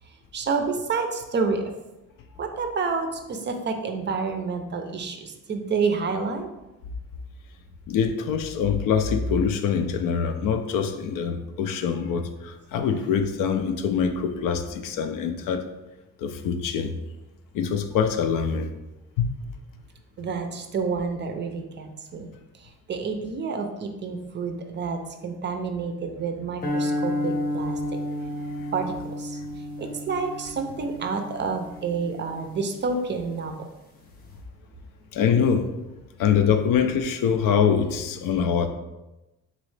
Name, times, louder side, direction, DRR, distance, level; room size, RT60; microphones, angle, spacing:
voice 1, 0.1-1.7 2.4-6.5 20.2-28.0 28.7-29.4 29.8-33.5, right 4 dB, 35° right, 5 dB, 0.4 m, -29 dB
voice 2, 7.9-15.7 16.2-16.9 17.5-18.7 19.2-19.3 28.5-28.7 35.1-35.7 36.2-38.7, left 7 dB, 75° left, 7 dB, 0.5 m, -24 dB
sound 1, 26.6-33.0, left 1 dB, 25° left, 0.7 m, -31 dB
4.0 x 3.1 x 3.2 m, 1.0 s
cardioid pair, 125°, 33 cm